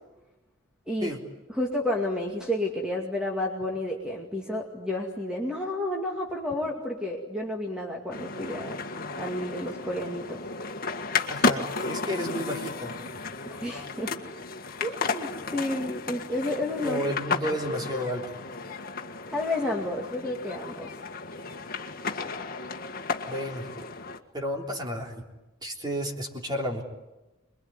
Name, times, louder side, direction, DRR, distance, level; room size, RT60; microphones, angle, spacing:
voice 1, 1.5-8.8 9.2-10.4 13.5-14.1 14.8-17.0 19.3-20.9, left 1 dB, 5° right, -1 dB, 2.4 m, -31 dB
sound 1, 8.1-24.2, left 4 dB, 45° left, 1.8 m, -33 dB
voice 2, 11.3-13.0 16.8-18.4 23.3-23.9 24.3-25.1 25.6-26.8, equal, 20° right, 2 dB, 3.5 m, -32 dB
26.5 x 22.0 x 9.7 m, 1.1 s
head